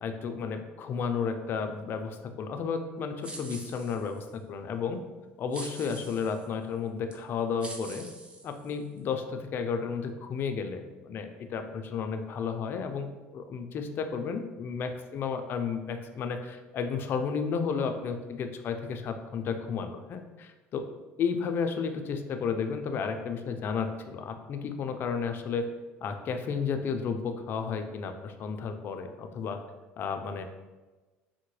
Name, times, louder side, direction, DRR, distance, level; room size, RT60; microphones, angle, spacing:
voice 1, 0.0-5.0 5.4-8.1 8.4-20.8 21.2-25.7 26.0-29.6 30.0-30.4, left 6 dB, 50° left, 7 dB, 0.4 m, -32 dB
sound 1, 3.2-4.3 5.5-6.5 7.1-7.2 7.6-9.0, right 2 dB, 25° right, 0.5 m, -45 dB
3.7 x 2.1 x 3.1 m, 1.2 s
supercardioid pair, 95°, 5 cm